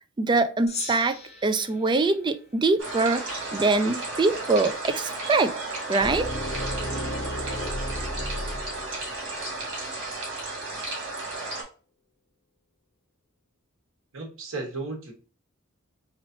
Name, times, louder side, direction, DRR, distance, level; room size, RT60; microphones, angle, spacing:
voice 1, 0.2-1.2 1.4-5.5 5.9-6.3, right 3 dB, 20° right, 10 dB, 0.3 m, -23 dB
Gong, 0.7-3.3, left 3 dB, 35° left, 1.1 m, -39 dB
sound 1, 2.8-11.6, right 2 dB, 60° right, 2.0 m, -34 dB
sound 2, 6.0-9.9, equal, 50° left, 0.8 m, -33 dB
voice 2, 14.1-15.1, right 3 dB, 75° right, 2 dB, 1.3 m, -34 dB
4.0 x 3.1 x 2.7 m, 0.39 s
head